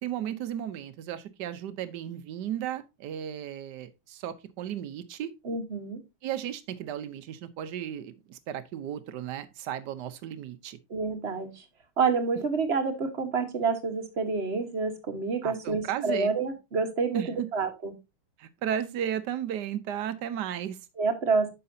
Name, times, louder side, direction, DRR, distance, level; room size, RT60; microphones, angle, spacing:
voice 1, 0.0-5.3 6.2-10.8 15.4-16.3 17.1-17.5 18.4-20.8, right 10 dB, 65° right, 1.2 m, -34 dB
voice 2, 5.4-6.0 10.9-11.6 12.0-17.9 21.0-21.5, right 4 dB, 35° right, 1.3 m, -28 dB
9.9 x 6.7 x 2.7 m
omnidirectional pair, 2.4 m